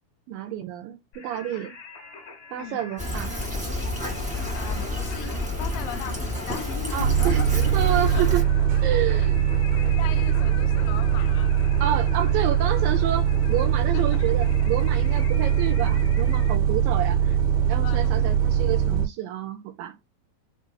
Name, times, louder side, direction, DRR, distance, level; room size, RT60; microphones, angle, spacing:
voice 1, 0.3-1.8 2.5-3.4 6.9-8.4 8.8-9.4 11.8-17.4 17.7-20.0, right 11 dB, 80° right, 2.1 m, -29 dB
Singing, 1.1-16.5, left 5 dB, 60° left, 1.6 m, -44 dB
Fill (with liquid), 3.0-8.4, left 1 dB, 5° right, 0.5 m, -30 dB
voice 2, 4.5-7.7 8.1-8.3 9.2-9.3 9.9-11.6 13.9-14.2 17.8-18.4, left 10 dB, 90° left, 2.6 m, -38 dB
Bus, 7.0-19.1, right 9 dB, 60° right, 2.0 m, -22 dB
6.2 x 2.6 x 2.2 m
omnidirectional pair, 4.4 m